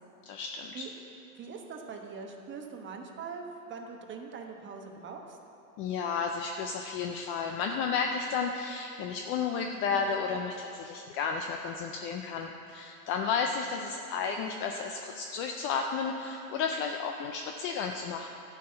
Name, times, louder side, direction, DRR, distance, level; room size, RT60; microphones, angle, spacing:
voice 1, 0.3-0.8 5.8-18.3, left 5 dB, 30° left, 4 dB, 0.4 m, -32 dB
voice 2, 1.4-3.4 3.7-5.4, right 5 dB, 25° right, 2 dB, 1.2 m, -42 dB
11.5 x 5.8 x 7.8 m, 2.9 s
hypercardioid pair, 115°, 47 cm